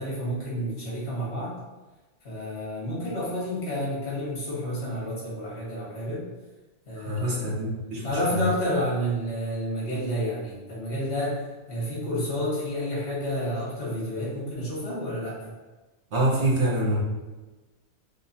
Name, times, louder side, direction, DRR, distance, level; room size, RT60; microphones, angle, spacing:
voice 1, 0.0-1.5 2.2-6.2 6.9-7.6 8.0-15.5, equal, 70° left, -8 dB, 1.9 m, -30 dB
voice 2, 7.0-8.0 8.3-8.4 16.1-17.0, right 1 dB, 70° right, -5 dB, 1.4 m, -25 dB
5.2 x 2.7 x 2.8 m, 1.2 s
omnidirectional pair, 1.2 m